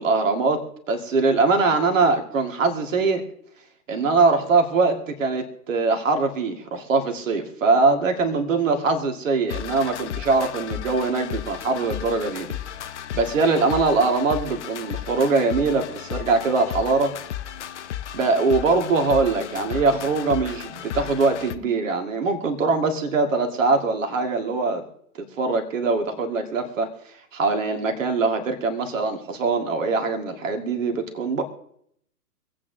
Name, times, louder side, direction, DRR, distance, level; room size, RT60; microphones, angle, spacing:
voice 1, 0.0-3.2 3.9-12.5 13.1-17.1 18.1-24.8 25.4-26.9 27.3-31.4, right 3 dB, 50° right, 4 dB, 1.9 m, -22 dB
sound 1, 9.5-21.6, left 10 dB, 45° left, 0.7 m, -34 dB
25.5 x 8.7 x 2.7 m, 0.71 s
figure-of-eight pair, 125°, 48 cm